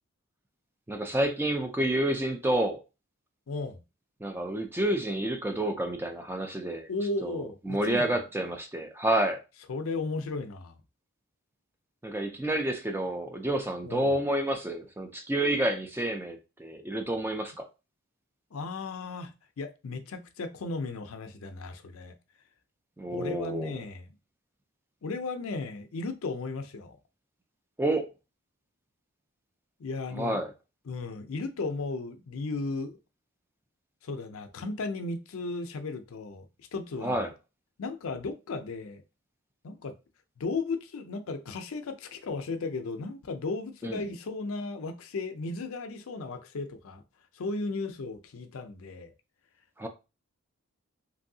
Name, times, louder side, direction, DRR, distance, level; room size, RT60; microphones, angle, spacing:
voice 1, 0.9-2.8 4.2-6.9 7.2-9.4 12.0-17.6 23.0-23.7 27.8-28.1 30.1-30.5 37.0-37.3 43.8-44.0 49.8-49.9, right 1 dB, 10° right, 0.3 m, -29 dB
voice 2, 3.5-3.8 6.9-8.2 9.7-10.8 13.8-14.1 18.5-22.2 23.1-24.1 25.0-27.0 29.8-30.4 30.9-33.0 34.0-36.5 36.7-37.3 37.8-39.0 39.6-39.9 40.4-47.0 47.3-49.1, left 3 dB, 75° left, 0.5 m, -35 dB
3.0 x 2.6 x 2.6 m
head